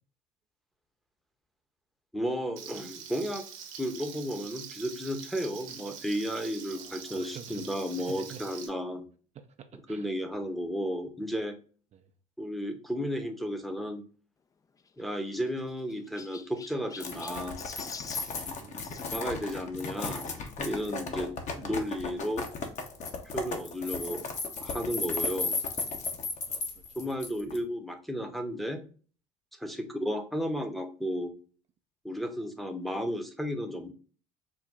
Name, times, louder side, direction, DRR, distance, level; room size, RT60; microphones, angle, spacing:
voice 1, 2.1-3.4 3.8-9.1 9.9-11.5 12.4-14.0 15.0-17.5 19.1-20.3 20.6-22.4 23.2-24.2 24.6-25.6 27.0-28.8 29.6-31.3 32.0-33.9, equal, ahead, 0.8 m, -33 dB
Frying (food), 2.6-8.7, right 8 dB, 85° right, 0.8 m, -45 dB
voice 2, 6.7-8.7 9.3-10.1 11.9-12.1 18.6-19.2 26.5-27.1, right 8 dB, 45° right, 0.5 m, -49 dB
Chirp tweet, 14.8-19.1 20.2-20.4 21.1-21.2 21.4-21.5 22.8-22.9, left 5 dB, 20° left, 0.4 m, -46 dB
sound 1, 17.0-27.6, left 3 dB, 50° left, 0.9 m, -35 dB
4.0 x 2.2 x 3.5 m
hypercardioid pair, 75°, 16 cm